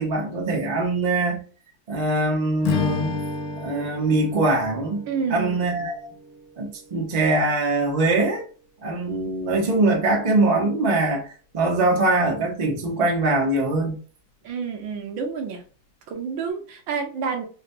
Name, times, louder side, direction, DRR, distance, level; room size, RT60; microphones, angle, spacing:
voice 1, 0.0-1.4 1.9-3.2 3.6-5.0 5.3-6.1 6.6-8.4 8.8-14.0, right 2 dB, 55° right, 0.4 m, -22 dB
Strum, 2.6-7.0, left 5 dB, 80° left, 0.8 m, -32 dB
voice 2, 5.1-5.6 14.4-15.6 16.1-17.4, right 6 dB, 75° right, 1.5 m, -29 dB
3.9 x 2.2 x 2.7 m
omnidirectional pair, 2.2 m